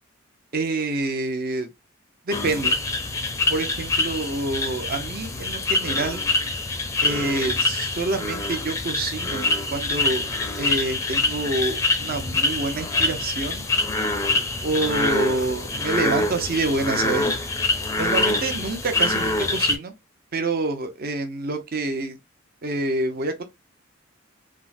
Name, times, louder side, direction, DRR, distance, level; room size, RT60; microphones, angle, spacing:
voice 1, 0.5-1.7 2.3-2.8 3.5-6.2 7.0-10.3 10.6-13.7 14.6-17.3 18.0-19.9 20.3-22.2 22.6-23.4, right 2 dB, 45° right, 0.6 m, -27 dB
sound 1, 2.3-19.8, left 2 dB, 15° left, 0.5 m, -25 dB
3.5 x 2.0 x 2.5 m
head